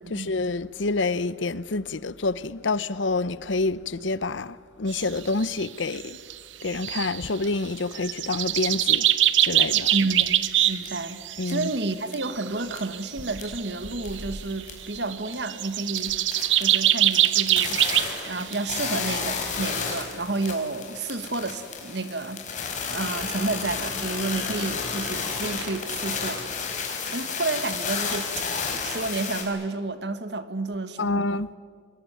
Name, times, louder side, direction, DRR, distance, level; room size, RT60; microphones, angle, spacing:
voice 1, 0.1-6.2 6.6-9.1 9.4-9.9 11.4-11.7 31.0-31.5, left 3 dB, 85° left, 0.8 m, -27 dB
sound 1, 4.9-5.7 5.9-6.0 6.3-6.4 6.6-7.6 7.9-11.8 12.2-14.2 14.5-19.1 19.4-19.5 19.7-20.0, right 13 dB, 90° right, 1.0 m, -24 dB
voice 2, 9.9-16.2 16.6-17.8 18.3-22.4 22.9-26.4 27.1-31.3, right 3 dB, 65° right, 1.5 m, -30 dB
sound 2, 10.2-10.3 10.8-10.9 11.4-11.8 12.1-12.4 12.7-13.6 13.8-15.0 15.3-15.4 15.7-29.4, left 5 dB, 40° left, 4.7 m, -32 dB
25.0 x 22.0 x 9.4 m
head